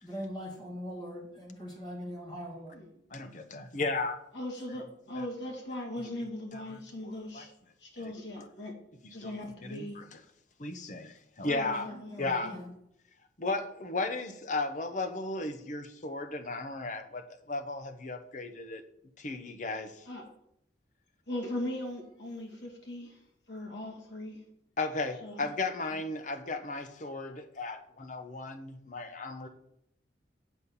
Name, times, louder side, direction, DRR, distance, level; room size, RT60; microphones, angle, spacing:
voice 1, 0.0-2.8 11.8-12.7, equal, 25° left, -3 dB, 2.2 m, -41 dB
voice 2, 3.1-4.2 5.2-5.3 6.5-7.4 8.4-8.5 9.2-9.3 9.6-10.2 10.6-11.9 12.2-12.5 13.4-18.8 19.2-19.9 24.8-29.5, left 3 dB, 45° left, 8 dB, 0.8 m, -35 dB
voice 3, 4.3-7.5 7.8-8.7 9.1-10.0 11.4-12.6 20.1-20.3 21.3-23.2 23.5-24.4 25.2-25.5 25.9-26.0, left 1 dB, 70° left, 0 dB, 2.4 m, -39 dB
8.2 x 4.2 x 7.0 m, 0.77 s
head